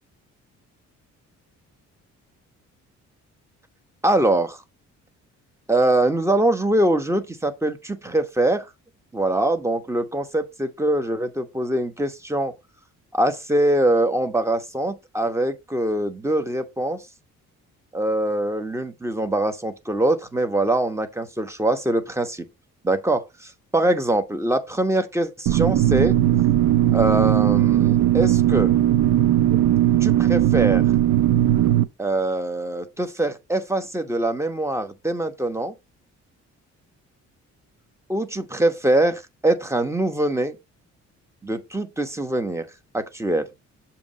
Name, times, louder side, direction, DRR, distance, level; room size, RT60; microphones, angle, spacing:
voice 1, 4.0-4.6 5.7-8.7 9.1-12.5 13.1-17.0 17.9-22.4 22.8-26.2 26.9-28.7 30.0-30.8 32.0-35.7 38.1-40.5 41.4-42.6 42.9-43.5, right 1 dB, 10° right, 1.1 m, -23 dB
sound 1, 25.5-31.8, right 13 dB, 80° right, 0.5 m, -18 dB
7.0 x 2.9 x 5.3 m
cardioid pair, 90°, 30 cm